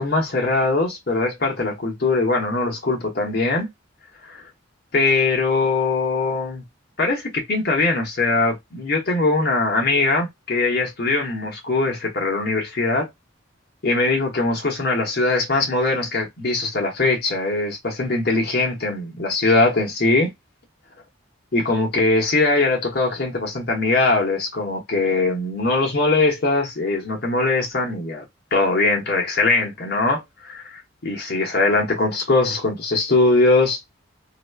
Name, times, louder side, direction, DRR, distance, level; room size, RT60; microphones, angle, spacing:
voice 1, 0.0-3.7 4.3-4.4 4.9-6.6 7.0-13.1 13.8-20.3 21.5-28.2 28.5-33.8, left 3 dB, 55° left, 1.0 m, -21 dB
3.0 x 2.1 x 2.2 m
head